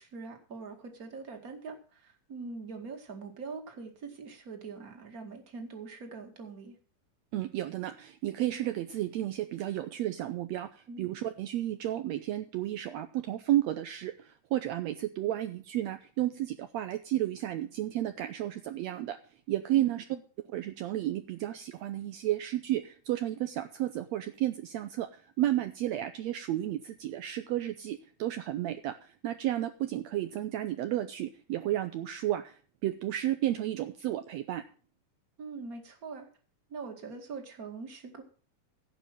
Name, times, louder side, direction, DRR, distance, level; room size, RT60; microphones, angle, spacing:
voice 1, 0.0-6.7 10.9-11.1 19.7-20.2 35.4-36.3 36.7-38.2, right 4 dB, 30° right, 4 dB, 2.0 m, -43 dB
voice 2, 7.3-19.2 19.5-20.0 20.5-34.7, right 13 dB, 80° right, 8 dB, 1.6 m, -32 dB
16.0 x 5.4 x 7.5 m, 0.41 s
omnidirectional pair, 3.8 m